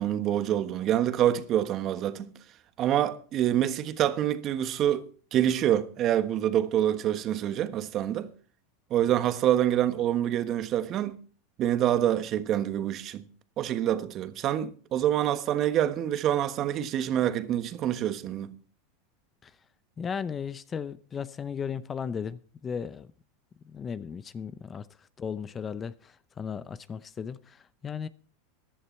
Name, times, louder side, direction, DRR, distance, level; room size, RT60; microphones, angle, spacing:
voice 1, 0.0-2.3 2.8-8.3 8.9-11.2 11.6-13.2 13.6-18.6, right 11 dB, 40° right, 1.3 m, -26 dB
voice 2, 20.0-23.1 23.6-28.1, left 6 dB, 25° left, 0.7 m, -36 dB
15.0 x 11.0 x 4.5 m
hypercardioid pair, 115°, 0 cm